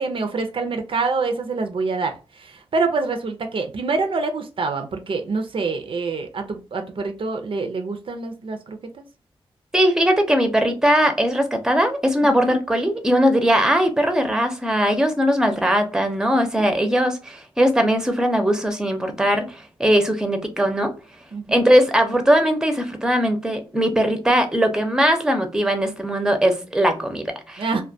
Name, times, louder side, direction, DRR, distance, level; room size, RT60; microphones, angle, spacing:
voice 1, 0.0-9.0 12.2-12.6 16.4-16.7 21.3-21.6 27.6-27.8, right 4 dB, 60° right, 0.4 m, -26 dB
voice 2, 9.7-20.9 21.5-27.8, equal, 5° right, 0.5 m, -20 dB
2.2 x 2.2 x 2.6 m
cardioid pair, 60°, 10 cm